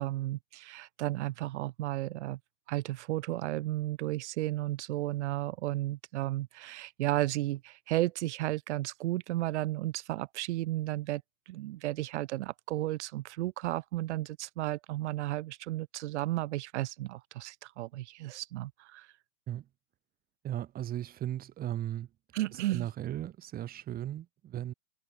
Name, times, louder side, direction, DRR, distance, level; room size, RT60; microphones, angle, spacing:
voice 1, 0.0-2.4 2.7-11.2 11.5-19.1 22.3-22.9, right 16 dB, 45° right, 3.8 m, -33 dB
voice 2, 20.4-22.1 22.7-24.7, right 12 dB, 20° right, 6.8 m, -36 dB
hypercardioid pair, 165°, 47 cm